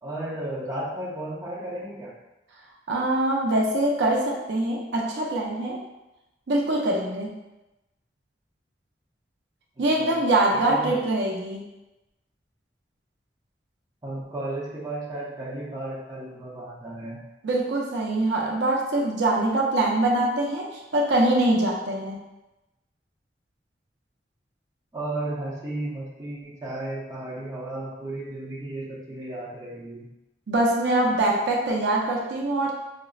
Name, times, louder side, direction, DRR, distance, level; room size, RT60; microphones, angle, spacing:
voice 1, 0.0-2.1 9.8-10.2 10.5-11.0 14.0-17.2 24.9-30.0, right 1 dB, 20° right, -6 dB, 0.7 m, -34 dB
voice 2, 2.9-5.8 6.5-7.4 9.8-11.7 17.4-22.2 30.5-32.7, right 2 dB, 80° right, -1 dB, 0.5 m, -23 dB
5.0 x 2.1 x 2.3 m, 0.97 s
head